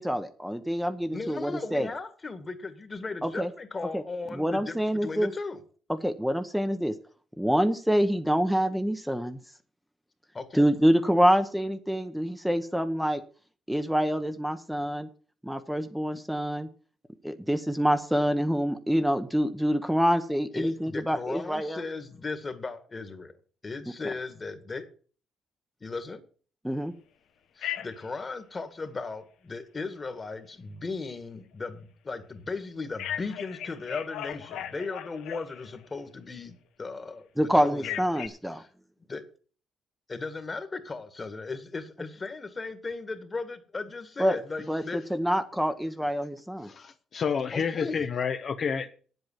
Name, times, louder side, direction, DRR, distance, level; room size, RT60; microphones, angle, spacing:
voice 1, 0.0-1.9 3.2-3.5 3.9-4.0 4.3-5.3 5.9-6.9 7.4-9.4 10.5-13.2 13.7-15.1 15.4-16.7 17.2-21.8 26.6-26.9 37.4-38.6 44.2-44.4 44.7-46.7, equal, ahead, 0.9 m, -26 dB
voice 2, 1.1-5.6 10.3-10.6 20.5-23.3 23.6-24.9 25.8-26.2 27.6-38.0 38.5-38.7 39.1-39.2 40.1-45.0 47.5-48.0, left 3 dB, 30° left, 1.9 m, -37 dB
Telephone, 27.6-28.1 33.0-35.9 37.8-38.3, left 11 dB, 85° left, 0.9 m, -37 dB
voice 3, 46.7-48.9, left 6 dB, 55° left, 0.8 m, -29 dB
8.9 x 8.1 x 7.3 m
cardioid pair, 90°, 0 cm